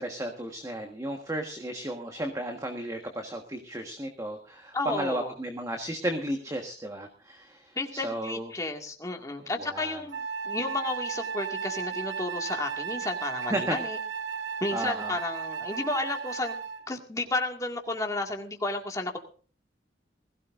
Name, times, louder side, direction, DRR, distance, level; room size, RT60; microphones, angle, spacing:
voice 1, 0.0-8.5 9.6-10.0 13.5-13.8 14.7-15.2, right 1 dB, 20° right, 3 dB, 1.5 m, -34 dB
voice 2, 4.7-5.3 7.8-14.0 14.6-16.6 16.9-19.2, left 2 dB, 20° left, 2 dB, 2.1 m, -32 dB
Wind instrument woodwind instrument, 10.1-16.9, right 6 dB, 85° right, 1.0 m, -35 dB
20.5 x 16.5 x 2.6 m, 0.41 s
head